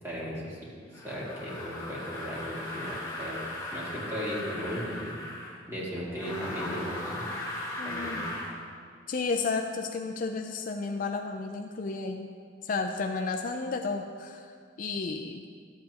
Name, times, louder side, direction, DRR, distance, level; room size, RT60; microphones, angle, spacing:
voice 1, 0.0-0.6 1.0-5.1 5.7-7.2 7.8-8.3, equal, 15° right, -7 dB, 2.2 m, -36 dB
sound 1, 0.9-5.6 6.1-8.6, left 1 dB, 15° left, 1.3 m, -38 dB
voice 2, 7.8-8.3 9.1-12.3 12.6-14.5 14.8-15.4, left 4 dB, 45° left, 4 dB, 0.4 m, -32 dB
12.5 x 7.5 x 2.9 m, 2.1 s
head